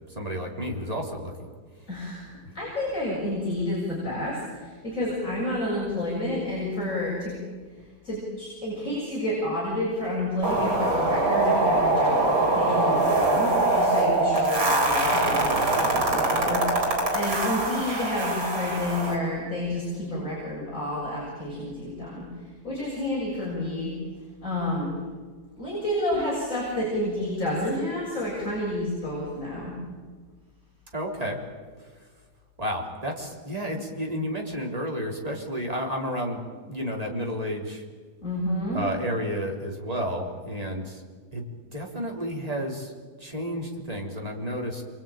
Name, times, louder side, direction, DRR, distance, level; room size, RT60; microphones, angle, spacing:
voice 1, 0.2-1.5 30.9-31.4 32.6-37.8 38.7-41.0 41.3-41.4 41.7-42.9 43.2-44.8, equal, 20° right, 0 dB, 3.7 m, -31 dB
voice 2, 1.9-7.4 8.0-22.3 22.6-23.9 24.4-25.0 25.6-29.8 38.2-38.8, left 1 dB, 40° left, -5 dB, 7.4 m, -30 dB
sound 1, 10.4-19.2, right 2 dB, 75° right, 4.9 m, -23 dB
28.0 x 23.5 x 9.0 m, 1.5 s
omnidirectional pair, 2.1 m